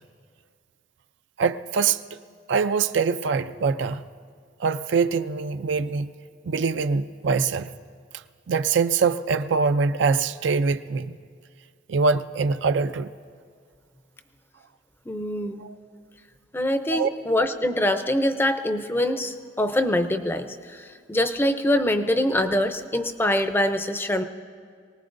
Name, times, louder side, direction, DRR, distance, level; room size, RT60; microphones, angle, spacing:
voice 1, 1.4-2.0 2.5-4.0 4.6-6.1 6.4-7.7 8.1-11.2 11.9-13.1 15.6-15.8 16.9-17.1, right 5 dB, 70° right, 11 dB, 0.4 m, -23 dB
voice 2, 15.1-15.6 16.5-24.2, left 1 dB, 10° left, 8 dB, 0.5 m, -24 dB
23.5 x 18.5 x 2.6 m, 2.1 s
head